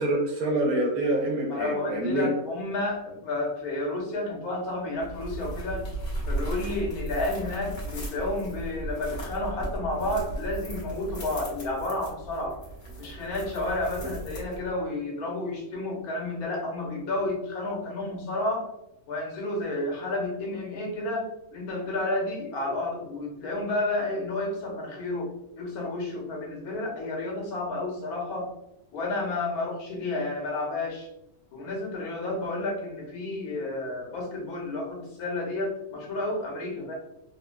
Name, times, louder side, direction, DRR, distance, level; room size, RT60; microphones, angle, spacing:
voice 1, 0.0-2.3, right 1 dB, 75° right, -1 dB, 1.2 m, -26 dB
voice 2, 1.5-5.8 6.3-12.6 13.0-18.7 19.1-28.5 28.9-31.1 31.5-36.9, left 2 dB, 80° left, -1 dB, 1.4 m, -31 dB
sound 1, 5.0-14.9, right 2 dB, 55° left, 1.3 m, -36 dB
3.1 x 2.5 x 2.2 m, 0.87 s
omnidirectional pair, 1.6 m